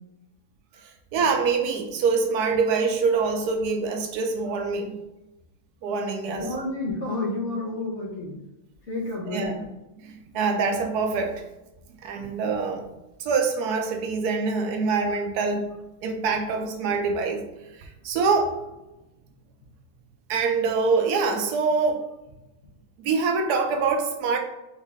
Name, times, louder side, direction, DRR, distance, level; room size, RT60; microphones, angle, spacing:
voice 1, 1.1-5.0 5.8-6.5 9.3-9.6 10.0-11.4 12.0-12.9 13.2-15.7 16.0-17.4 17.8-18.6 20.3-22.0 23.0-24.4, right 4 dB, 90° right, 4 dB, 1.2 m, -25 dB
voice 2, 6.3-8.4 8.9-9.6, left 2 dB, 50° left, -2 dB, 1.3 m, -30 dB
4.9 x 2.6 x 3.5 m, 0.97 s
omnidirectional pair, 1.7 m